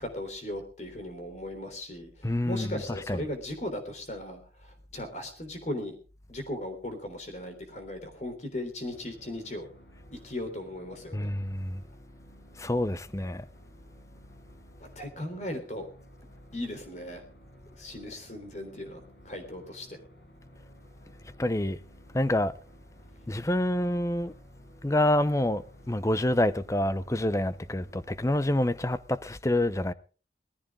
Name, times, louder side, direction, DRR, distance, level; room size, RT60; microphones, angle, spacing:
voice 1, 0.0-6.0 6.3-9.7 10.1-11.3 15.0-15.9 16.5-17.2 17.8-19.0 19.3-20.0, left 1 dB, 40° left, 3.5 m, -37 dB
voice 2, 2.2-3.3 11.1-11.8 12.6-13.4 21.4-21.8 22.1-22.5 23.3-24.3 24.8-29.9, left 1 dB, 15° left, 0.6 m, -27 dB
sound 1, 8.9-28.6, equal, 70° left, 5.2 m, -55 dB
19.0 x 14.5 x 3.7 m
head